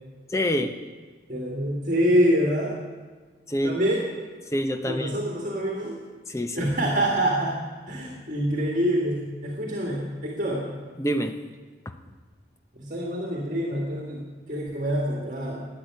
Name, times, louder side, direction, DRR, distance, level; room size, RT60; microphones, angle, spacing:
voice 1, 0.3-0.7 3.5-3.8 4.5-5.1 6.3-6.7 11.0-11.4, equal, 15° left, 7 dB, 0.7 m, -26 dB
voice 2, 1.3-2.8 3.6-4.1 4.9-6.0 6.5-7.6 7.9-10.7 12.7-15.7, equal, 45° right, -1 dB, 1.9 m, -26 dB
12.5 x 8.8 x 9.5 m, 1.4 s
head